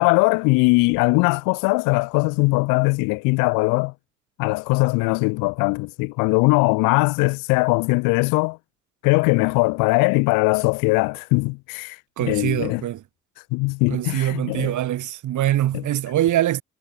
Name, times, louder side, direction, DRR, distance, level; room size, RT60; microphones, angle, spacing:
voice 1, 0.0-3.9 4.4-8.6 9.0-12.8 13.5-14.8 15.7-15.8, left 27 dB, 80° left, 3.7 m, -20 dB
voice 2, 12.2-13.0 13.9-16.6, right 13 dB, 65° right, 2.4 m, -23 dB
hypercardioid pair, 45°, 32 cm